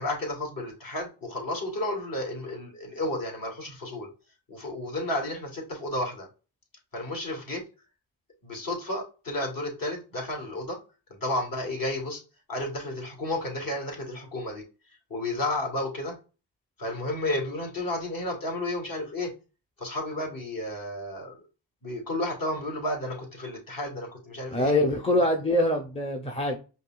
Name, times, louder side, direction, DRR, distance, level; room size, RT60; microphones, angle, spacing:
voice 1, 0.0-4.1 4.5-6.3 6.9-7.6 8.4-10.8 11.2-12.2 12.5-14.6 15.1-16.1 16.8-19.3 19.8-21.4 21.8-24.7, left 1 dB, 45° left, 2.4 m, -32 dB
voice 2, 24.5-26.6, left 1 dB, 10° left, 0.9 m, -24 dB
5.2 x 3.0 x 2.5 m
supercardioid pair, 60°, 48 cm